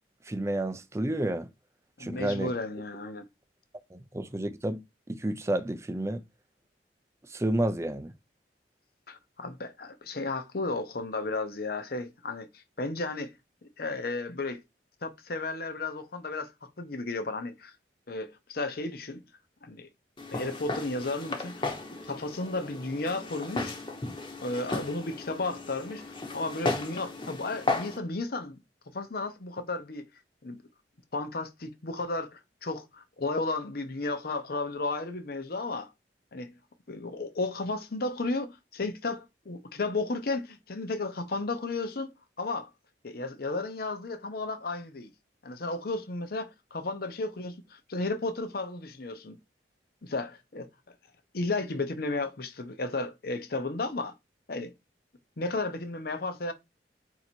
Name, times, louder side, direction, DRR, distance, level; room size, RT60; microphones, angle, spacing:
voice 1, 0.3-1.5 2.0-2.5 3.9-4.8 5.1-6.2 7.3-8.1, right 1 dB, 15° right, 0.5 m, -30 dB
voice 2, 2.0-3.2 9.1-13.3 13.8-14.6 15.0-17.7 18.1-19.2 19.6-19.9 20.3-21.7 22.0-23.8 24.4-28.6 28.9-30.0 30.4-30.6 31.1-35.9 36.3-36.5 36.9-42.7 43.0-45.1 45.4-49.4 50.0-50.7 51.3-54.1 54.5-54.7 55.4-56.5, left 3 dB, 55° left, 0.8 m, -33 dB
Walk footsteps, 20.2-28.0, left 2 dB, 30° left, 0.9 m, -35 dB
3.9 x 2.7 x 4.5 m
head